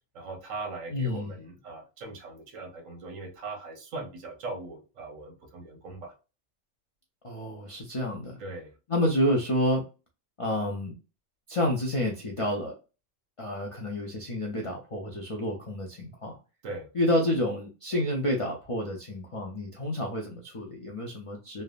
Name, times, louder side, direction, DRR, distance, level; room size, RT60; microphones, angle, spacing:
voice 1, 0.1-6.1 8.4-8.7 16.6-16.9, right 3 dB, 80° right, 1.2 m, -40 dB
voice 2, 0.9-1.4 7.2-8.4 8.9-9.9 10.4-11.0 11.5-12.7 13.4-16.4 16.9-21.6, left 1 dB, 55° left, 0.3 m, -29 dB
3.3 x 2.0 x 2.4 m
omnidirectional pair, 1.3 m